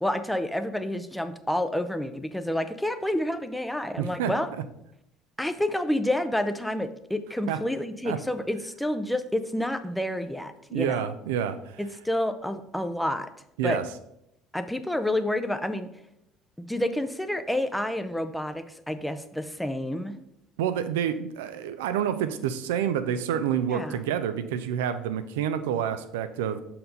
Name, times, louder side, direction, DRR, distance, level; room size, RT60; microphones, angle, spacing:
voice 1, 0.0-4.5 5.4-11.1 11.8-13.3 13.6-13.8 14.5-15.9 16.6-20.1 23.7-24.0, left 1 dB, 5° left, 9 dB, 0.5 m, -29 dB
voice 2, 4.0-4.3 7.5-7.6 8.0-8.2 10.7-11.8 13.6-13.8 20.6-26.6, right 9 dB, 70° right, 11 dB, 0.4 m, -28 dB
6.6 x 4.2 x 3.8 m, 0.78 s
figure-of-eight pair, 60°, 0 cm